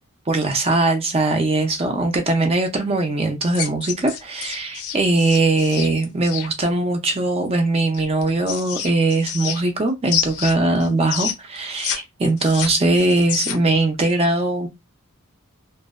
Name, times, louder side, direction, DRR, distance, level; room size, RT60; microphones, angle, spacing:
voice 1, 0.3-14.7, right 2 dB, 25° right, 0.4 m, -20 dB
sound 1, 3.5-6.5 7.9-9.8 10.1-12.0 12.2-13.8, left 8 dB, 80° left, 0.6 m, -28 dB
2.6 x 2.1 x 2.3 m
head